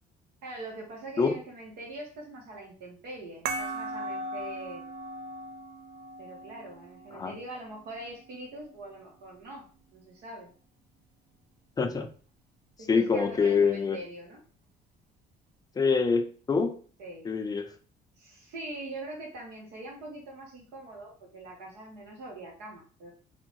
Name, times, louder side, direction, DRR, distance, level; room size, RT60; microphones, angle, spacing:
voice 1, 0.4-4.8 6.2-9.7 9.9-10.5 12.8-14.4 17.0-17.3 18.2-23.1, right 2 dB, 85° right, -3 dB, 0.9 m, -43 dB
sound 1, 3.5-8.5, right 2 dB, 65° right, 0.4 m, -39 dB
voice 2, 11.8-12.1 12.9-14.0 15.8-16.8 17.2-17.7, left 5 dB, 20° left, 7 dB, 0.4 m, -25 dB
2.6 x 2.1 x 3.0 m, 0.40 s
cardioid pair, 110°, 17 cm